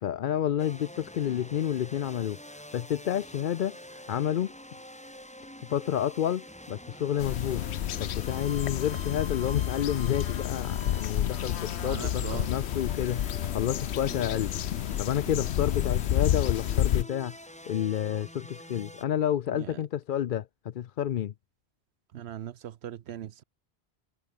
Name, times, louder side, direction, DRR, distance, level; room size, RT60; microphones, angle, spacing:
voice 1, 0.0-4.5 5.7-7.6 8.0-14.5 15.0-17.3 17.7-21.3, left 10 dB, 60° left, 0.6 m, -30 dB
sound 1, 0.6-19.0, equal, 5° left, 2.5 m, -46 dB
sound 2, 7.2-17.0, left 11 dB, 80° left, 0.9 m, -30 dB
voice 2, 11.8-12.5 14.1-14.2 19.5-19.8 22.1-23.4, right 10 dB, 80° right, 0.9 m, -39 dB
omnidirectional pair, 1.1 m